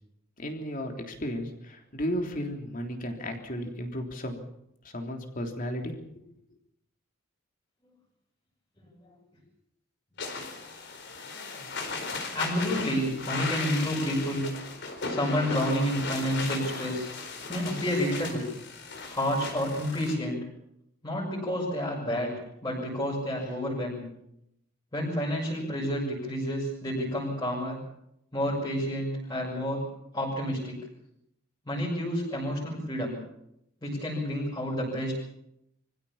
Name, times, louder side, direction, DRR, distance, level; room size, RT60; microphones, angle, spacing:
voice 1, 0.4-4.4 4.8-5.9, equal, 40° left, 3 dB, 3.4 m, -34 dB
sound 1, 10.2-20.1, left 3 dB, 60° left, 4.5 m, -36 dB
voice 2, 12.3-14.5 15.0-17.1 17.5-18.4 19.1-20.4 21.0-22.3 22.6-24.0 24.9-27.8 28.3-29.8 30.1-30.8 31.6-33.1 33.8-35.1, equal, 20° left, -6 dB, 6.6 m, -29 dB
25.0 x 16.0 x 7.2 m, 0.80 s
head